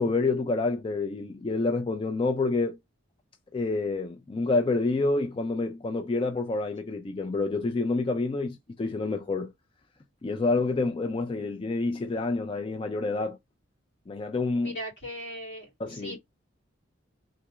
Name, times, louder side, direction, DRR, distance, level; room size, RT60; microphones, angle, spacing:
voice 1, 0.0-2.8 3.5-9.5 10.2-13.4 14.1-14.8 15.8-16.2, left 3 dB, 25° left, 0.3 m, -28 dB
voice 2, 14.6-16.2, equal, 70° left, 2.4 m, -39 dB
3.7 x 2.3 x 2.9 m
head